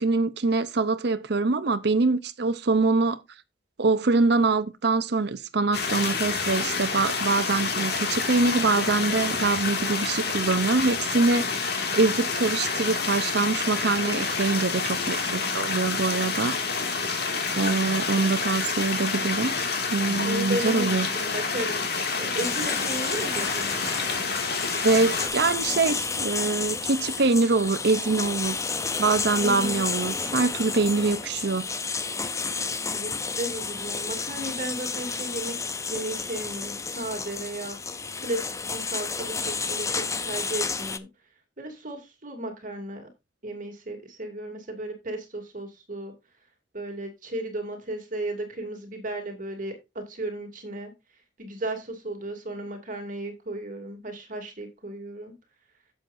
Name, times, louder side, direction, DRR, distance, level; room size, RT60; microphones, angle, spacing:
voice 1, 0.0-3.2 3.8-16.9 17.6-19.6 19.9-21.1 24.8-28.6 29.0-31.7, right 3 dB, 65° right, 0.7 m, -24 dB
sound 1, 5.7-25.3, left 4 dB, 60° left, 2.3 m, -28 dB
voice 2, 20.2-21.8 22.2-23.8 29.4-29.8 32.9-37.8 38.2-41.1 41.6-43.1 43.4-46.1 46.7-50.9 51.4-55.3, right 1 dB, 45° right, 2.6 m, -34 dB
sound 2, 22.4-41.0, left 4 dB, 15° left, 0.6 m, -31 dB
11.5 x 7.7 x 2.6 m
head